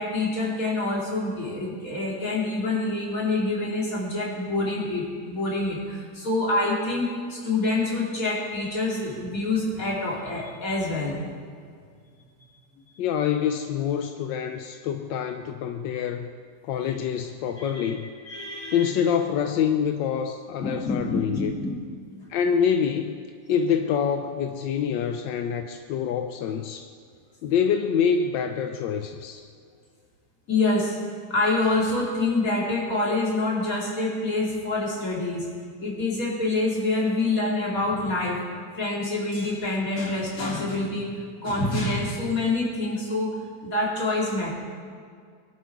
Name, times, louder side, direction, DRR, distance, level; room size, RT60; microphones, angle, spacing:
voice 1, 0.0-11.3 16.8-16.9 17.6-17.9 18.3-19.0 20.6-21.8 30.5-31.0 31.3-35.5 35.8-38.4 38.8-44.5, left 2 dB, 50° left, -3 dB, 3.1 m, -26 dB
voice 2, 13.0-16.3 16.6-18.1 18.7-21.5 22.3-23.2 23.5-26.9 27.4-29.5, left 7 dB, 85° left, 6 dB, 1.4 m, -26 dB
22.5 x 12.0 x 4.7 m, 2.2 s
omnidirectional pair, 1.9 m